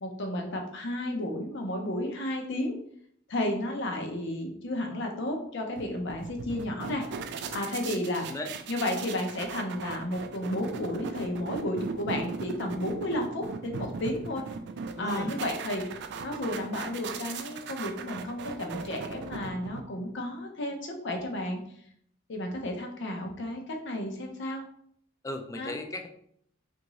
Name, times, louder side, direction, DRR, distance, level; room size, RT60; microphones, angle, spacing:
voice 1, 0.0-2.7 3.3-7.0 7.5-8.2 8.7-14.4 15.0-15.8 16.2-21.6 22.3-24.6 25.6-25.8, left 1 dB, 65° left, 2 dB, 0.7 m, -32 dB
sound 1, 5.8-20.1, right 5 dB, 60° right, 0.3 m, -38 dB
voice 2, 8.2-8.5 15.0-15.4 25.2-26.1, left 2 dB, 15° left, 5 dB, 0.3 m, -36 dB
3.5 x 2.6 x 3.0 m, 0.67 s
head